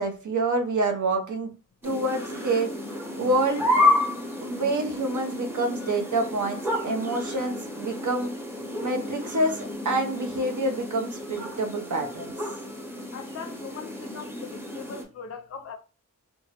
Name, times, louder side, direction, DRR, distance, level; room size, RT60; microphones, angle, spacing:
voice 1, 0.0-1.5 1.8-3.7 4.4-8.3 8.8-12.3, right 2 dB, 65° right, 0.6 m, -27 dB
sound 1, 1.8-15.0, left 1 dB, 5° right, 0.8 m, -30 dB
voice 2, 13.1-15.7, left 6 dB, 50° left, 0.4 m, -40 dB
2.9 x 2.3 x 2.8 m
wide cardioid pair, 55°, 32 cm